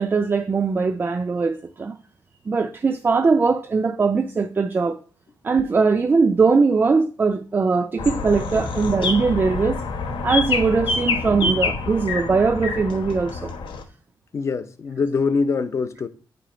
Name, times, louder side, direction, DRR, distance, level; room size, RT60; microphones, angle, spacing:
voice 1, 0.0-2.0 2.5-5.0 5.4-9.8 10.2-13.5, right 4 dB, 25° right, 0.3 m, -20 dB
sound 1, 8.0-13.8, left 4 dB, 80° left, 1.0 m, -26 dB
voice 2, 14.3-16.1, left 4 dB, 35° left, 0.5 m, -24 dB
9.1 x 3.0 x 4.9 m
wide cardioid pair, 160°, 8 cm